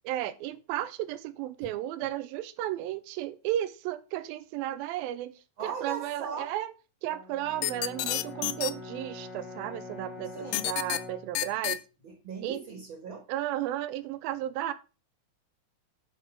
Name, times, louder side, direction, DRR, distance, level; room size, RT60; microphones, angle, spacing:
voice 1, 0.1-6.7 7.0-11.8 12.4-12.6 13.3-14.7, right 13 dB, 90° right, 2.4 m, -34 dB
voice 2, 5.6-6.5 10.3-10.7 12.0-13.2, right 6 dB, 45° right, 1.9 m, -39 dB
Brass instrument, 7.1-11.4, left 3 dB, 40° left, 2.0 m, -45 dB
Bowed string instrument, 7.4-11.6, left 1 dB, 55° left, 1.6 m, -49 dB
sound 1, 7.6-8.7 10.5-11.0 11.4-11.8, left 15 dB, 80° left, 2.2 m, -29 dB
8.4 x 5.8 x 6.0 m
omnidirectional pair, 4.1 m